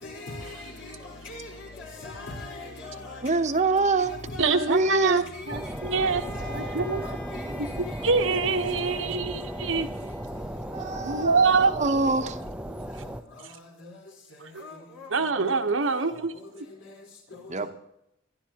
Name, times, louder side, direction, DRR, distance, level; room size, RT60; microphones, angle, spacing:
voice 1, 0.0-3.3 4.0-4.7 5.0-5.7 6.0-6.7 7.0-8.0 8.3-8.6 9.5-9.7 10.8-12.1 13.8-13.9 14.6-15.6 16.1-16.2, left 2 dB, 80° left, 4.7 m, -41 dB
voice 2, 3.2-4.1 4.4-5.2 10.7-12.4 17.5-17.7, right 3 dB, 40° right, 0.8 m, -25 dB
voice 3, 4.4-6.2 6.5-7.2 7.6-9.9 11.0-11.9 14.5-14.6 15.1-16.3, right 4 dB, 85° right, 1.1 m, -25 dB
sound 1, 5.5-13.2, equal, 5° right, 0.5 m, -36 dB
Bowed string instrument, 5.7-10.5, right 1 dB, 15° left, 1.6 m, -47 dB
23.0 x 12.0 x 2.9 m
head